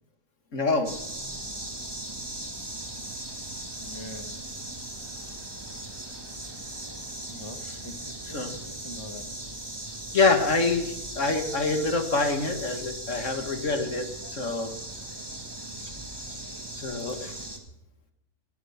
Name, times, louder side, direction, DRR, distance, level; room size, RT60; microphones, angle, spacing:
voice 1, 0.5-0.9 8.2-8.5 10.1-14.7 16.8-17.4, left 3 dB, 75° left, 6 dB, 2.4 m, -26 dB
sound 1, 0.8-17.6, right 1 dB, 20° right, 2.1 m, -38 dB
voice 2, 3.8-4.3 7.3-9.3, left 2 dB, 25° left, 7 dB, 1.4 m, -44 dB
21.5 x 10.5 x 5.9 m, 0.86 s
omnidirectional pair, 1.3 m